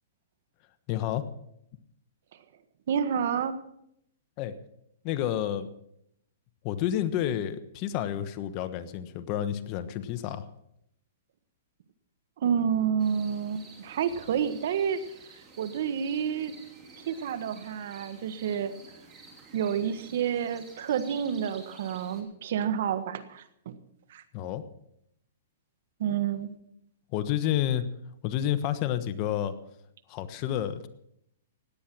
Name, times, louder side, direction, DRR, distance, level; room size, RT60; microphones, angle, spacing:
voice 1, 0.9-1.3 4.4-4.6 5.0-5.7 6.6-10.5 24.3-24.6 27.1-27.8 28.2-29.5 30.1-30.9, left 11 dB, 35° left, 11 dB, 1.1 m, -30 dB
voice 2, 2.9-3.5 12.4-15.0 15.6-16.5 17.1-18.7 19.5-23.8 24.1-24.2 26.0-26.5, right 8 dB, 60° right, 12 dB, 1.4 m, -29 dB
sound 1, 13.0-22.2, right 4 dB, 20° right, 3.0 m, -51 dB
17.0 x 10.0 x 6.1 m, 0.75 s
hypercardioid pair, 150°, 0 cm